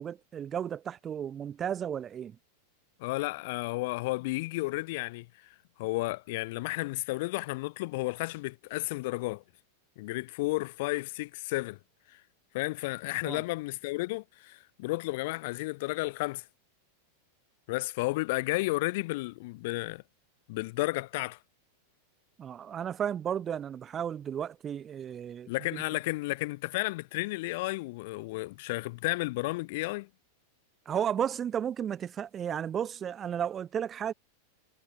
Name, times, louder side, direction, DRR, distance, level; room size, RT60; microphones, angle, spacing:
voice 1, 0.0-2.4 13.2-13.4 22.4-25.8 30.9-34.1, right 9 dB, 25° right, 0.4 m, -33 dB
voice 2, 3.0-5.3 5.8-9.4 10.0-11.8 12.1-12.2 12.5-16.4 17.7-20.0 20.5-21.4 25.5-30.1, left 22 dB, 50° left, 0.5 m, -32 dB
figure-of-eight pair, 90°, 0 cm